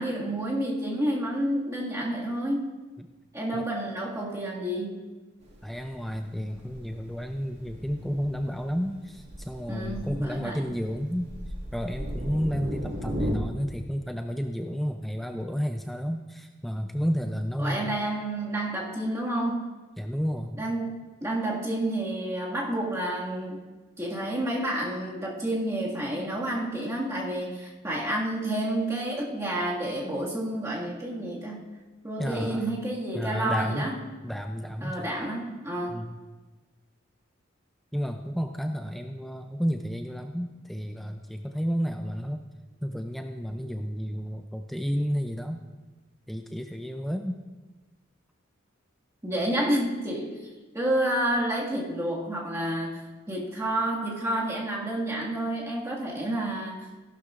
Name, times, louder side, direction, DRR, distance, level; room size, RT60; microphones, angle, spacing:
voice 1, 0.0-2.7 3.3-5.0 9.7-10.7 17.6-19.6 20.6-23.6 24.0-31.6 32.0-34.0 34.8-36.0 49.2-50.4 50.7-56.9, right 1 dB, 15° right, -4 dB, 1.9 m, -29 dB
Thunder, 5.4-13.3, equal, 60° right, 2.0 m, -37 dB
voice 2, 5.6-11.3 11.7-18.0 20.0-20.6 32.2-32.7 33.1-33.9 34.2-35.1 35.9-36.2 37.9-42.4 42.8-45.6 46.3-47.4, equal, ahead, 5 dB, 0.4 m, -31 dB
15.0 x 12.0 x 2.5 m, 1.3 s
head